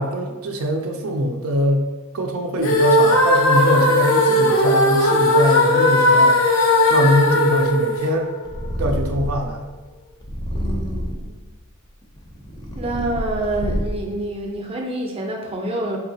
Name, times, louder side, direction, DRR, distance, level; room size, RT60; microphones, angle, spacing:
voice 1, 0.0-1.8 2.1-6.4 6.9-8.3 8.8-9.6, equal, 80° right, 3 dB, 0.5 m, -22 dB
sound 1, 2.6-8.7, left 1 dB, 70° left, 0.5 m, -17 dB
Purr, 8.5-9.5 10.2-11.3 12.0-14.1, equal, 20° left, 0.5 m, -27 dB
voice 2, 10.5-11.4 12.7-16.0, right 1 dB, 25° right, 0 dB, 0.5 m, -27 dB
4.4 x 2.8 x 2.7 m, 1.3 s
head